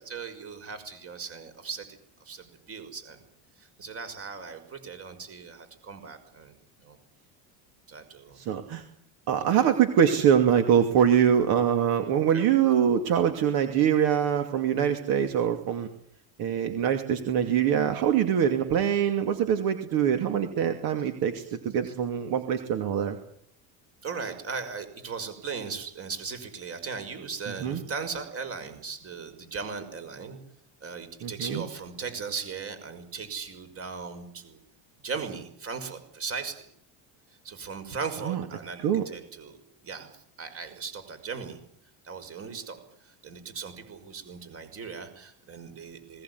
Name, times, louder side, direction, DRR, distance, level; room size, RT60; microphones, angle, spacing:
voice 1, 0.0-1.9 2.2-3.3 3.6-7.0 7.9-8.4 9.2-9.7 12.3-12.5 21.8-21.9 24.0-30.4 30.8-34.6 35.0-36.6 37.4-39.6 39.8-41.6 42.0-46.2, right 5 dB, 35° right, 9 dB, 5.9 m, -38 dB
voice 2, 8.4-8.8 9.3-15.9 16.4-23.2 27.6-27.8 31.2-31.6 38.2-38.4 38.8-39.0, right 8 dB, 65° right, 7 dB, 2.8 m, -24 dB
20.5 x 19.5 x 9.7 m, 0.67 s
cardioid pair, 135°, 40 cm